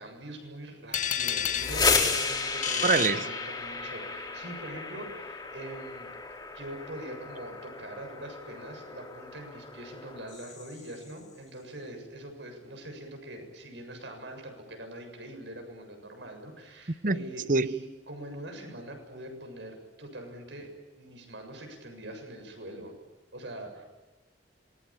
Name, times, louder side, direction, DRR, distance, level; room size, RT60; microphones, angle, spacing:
voice 1, 0.0-6.2 6.5-20.7 21.0-22.9 23.3-23.8, right 1 dB, 80° right, 7.4 m, -43 dB
sound 1, 0.9-4.0, left 8 dB, 45° left, 1.6 m, -32 dB
sound 2, 1.4-11.1, left 4 dB, 25° left, 3.9 m, -33 dB
voice 2, 2.8-3.3 17.0-17.7, right 3 dB, 45° right, 0.8 m, -25 dB
27.0 x 22.0 x 8.9 m
head